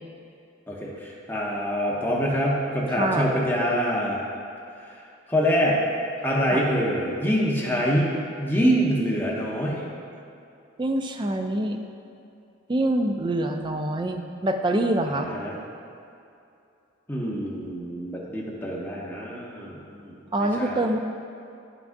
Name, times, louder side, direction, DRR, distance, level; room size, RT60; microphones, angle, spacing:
voice 1, 0.7-4.2 5.3-5.8 6.2-9.9 15.1-15.5 17.1-20.1 20.4-20.8, equal, 10° left, -4 dB, 0.7 m, -25 dB
voice 2, 2.9-3.3 6.5-6.7 10.8-11.8 12.7-15.3 20.3-21.0, right 1 dB, 25° right, 5 dB, 0.3 m, -25 dB
9.4 x 5.8 x 2.6 m, 2.6 s
head